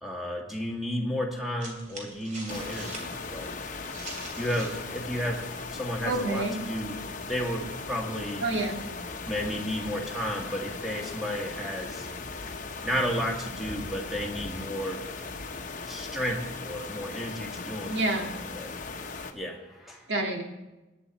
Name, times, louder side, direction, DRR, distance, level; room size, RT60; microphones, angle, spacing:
voice 1, 0.0-3.6 4.4-5.5 5.7-8.5 9.3-12.1 12.8-15.1 15.8-18.3 18.5-18.7 19.3-20.1, equal, ahead, 0 dB, 1.8 m, -33 dB
sound 1, 1.6-4.9 5.1-7.7, right 2 dB, 40° right, 2.9 m, -45 dB
sound 2, 2.5-19.3, left 4 dB, 45° left, 1.0 m, -38 dB
voice 2, 6.0-6.6 8.4-8.8 17.9-18.3 20.1-20.4, right 2 dB, 75° right, 2 dB, 1.9 m, -28 dB
22.0 x 9.2 x 4.3 m, 1.1 s
head